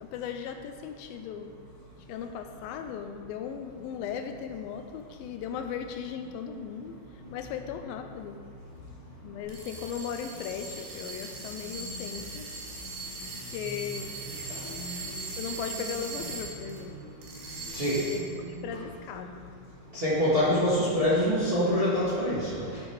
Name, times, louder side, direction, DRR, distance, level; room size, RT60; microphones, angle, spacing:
voice 1, 0.0-1.5 2.1-7.0 7.3-8.4 9.2-12.5 13.5-14.6 15.4-17.1 17.6-18.2 18.5-19.3, left 7 dB, 80° left, 6 dB, 2.3 m, -37 dB
sound 1, 9.4-16.8 17.2-18.4, right 3 dB, 85° right, 3.6 m, -40 dB
voice 2, 14.5-15.0 15.7-15.9 17.7-18.8 19.9-22.8, equal, 25° right, -9 dB, 1.5 m, -27 dB
11.0 x 7.3 x 4.7 m, 2.4 s
omnidirectional pair, 4.3 m